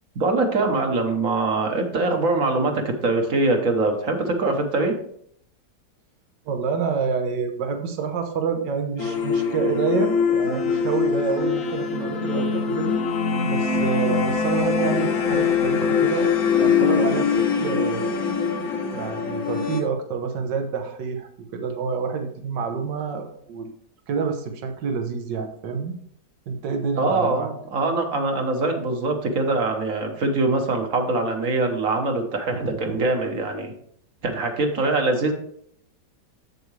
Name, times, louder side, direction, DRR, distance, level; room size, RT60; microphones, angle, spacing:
voice 1, 0.1-5.0 27.0-33.7 34.2-35.3, right 3 dB, 55° right, 4 dB, 1.4 m, -23 dB
voice 2, 6.5-12.9 13.4-16.3 16.6-17.3 17.6-18.2 18.9-23.7 24.1-25.9 26.5-27.5 32.5-33.0, right 5 dB, 80° right, 5 dB, 1.7 m, -28 dB
sound 1, 9.0-19.8, left 6 dB, 55° left, 1.2 m, -23 dB
7.8 x 7.2 x 3.2 m, 0.66 s
omnidirectional pair, 1.9 m